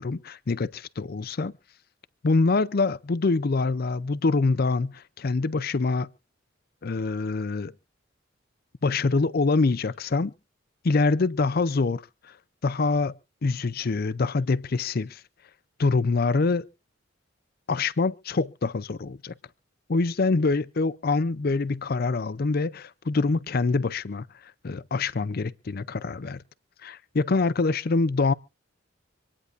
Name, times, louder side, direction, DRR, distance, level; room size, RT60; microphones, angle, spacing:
voice 1, 0.0-1.5 2.2-6.1 6.8-7.7 8.8-10.3 10.8-12.3 12.6-15.2 15.8-16.6 17.7-19.3 19.9-26.4 26.8-28.3, left 3 dB, 50° left, 0.5 m, -25 dB
26.0 x 9.8 x 2.6 m
head